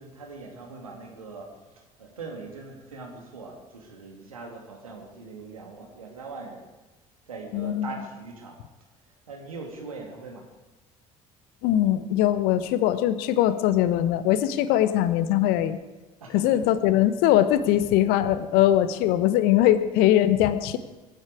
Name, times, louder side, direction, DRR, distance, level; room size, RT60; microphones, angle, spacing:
voice 1, 0.0-1.5 2.0-6.6 7.3-8.6 9.3-10.4 16.2-16.6, right 3 dB, 80° right, 1 dB, 2.7 m, -41 dB
voice 2, 7.5-8.0 11.6-15.8 16.3-20.8, left 12 dB, 60° left, 13 dB, 1.1 m, -21 dB
23.0 x 11.5 x 5.0 m, 1.2 s
figure-of-eight pair, 55°, 18 cm